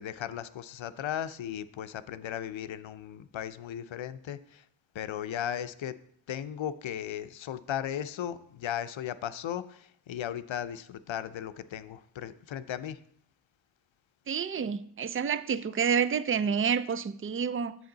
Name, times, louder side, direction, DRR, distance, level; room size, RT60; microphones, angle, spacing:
voice 1, 0.0-4.6 4.9-6.0 6.3-13.0, left 10 dB, 70° left, 0.6 m, -36 dB
voice 2, 14.3-17.8, right 7 dB, 30° right, 0.4 m, -29 dB
7.9 x 7.7 x 3.9 m
wide cardioid pair, 80°, 48 cm